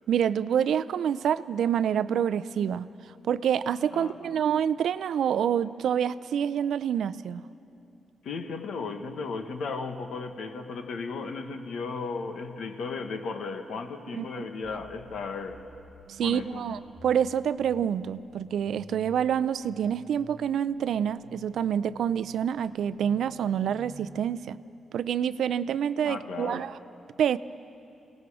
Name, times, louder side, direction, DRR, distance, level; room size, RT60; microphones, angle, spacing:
voice 1, 0.1-2.9 3.3-7.4 14.1-14.5 16.1-24.6 24.9-26.8 27.2-27.4, right 8 dB, 70° right, 15 dB, 0.5 m, -27 dB
voice 2, 3.9-4.4 8.2-15.6 16.2-16.6 26.0-26.7, left 4 dB, 70° left, 6 dB, 1.4 m, -35 dB
sound 1, 14.6-24.4, equal, 5° left, 4.2 m, -52 dB
29.5 x 18.5 x 4.9 m, 2.7 s
wide cardioid pair, 160°, 0 cm